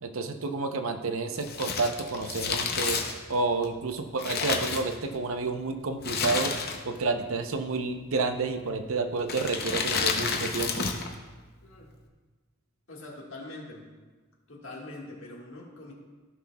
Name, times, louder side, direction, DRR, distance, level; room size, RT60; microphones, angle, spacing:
voice 1, 0.0-3.0 3.3-6.5 6.8-10.9, right 3 dB, 70° right, 7 dB, 0.7 m, -30 dB
Crumpling crinkling, 1.4-5.4 6.0-7.0 7.3-7.4 8.2-8.6 9.2-11.1 11.4-11.5, left 5 dB, 45° left, 0.7 m, -30 dB
voice 2, 11.6-11.9 12.9-13.9 14.5-15.9, left 2 dB, 60° left, -2 dB, 1.7 m, -43 dB
15.0 x 5.9 x 2.3 m, 1.3 s
head